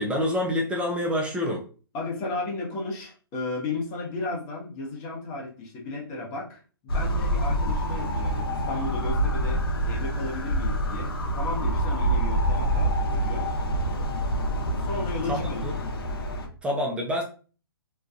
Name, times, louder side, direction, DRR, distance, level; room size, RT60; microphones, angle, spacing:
voice 1, 0.0-1.7 15.3-15.7 16.6-17.2, left 1 dB, 10° right, -1 dB, 0.3 m, -27 dB
voice 2, 1.9-13.5 14.8-15.6, left 3 dB, 30° left, -2 dB, 0.7 m, -34 dB
sound 1, 6.9-16.5, right 1 dB, 75° left, 0.7 m, -26 dB
2.5 x 2.2 x 2.4 m, 0.38 s
figure-of-eight pair, 125°, 13 cm